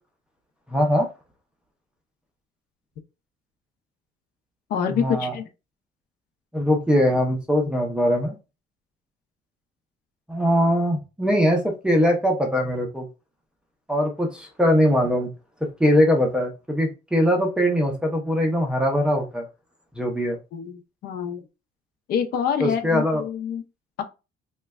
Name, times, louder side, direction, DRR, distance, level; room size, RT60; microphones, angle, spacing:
voice 1, 0.7-1.1 4.9-5.3 6.5-8.3 10.3-13.1 13.9-15.3 15.8-19.5 20.0-20.4 22.6-23.2, equal, 5° right, 0.5 m, -21 dB
voice 2, 4.7-5.4 20.5-21.4 22.1-23.6 24.0-24.1, left 8 dB, 55° left, 0.6 m, -26 dB
3.1 x 2.2 x 3.4 m
cardioid pair, 180°, 19 cm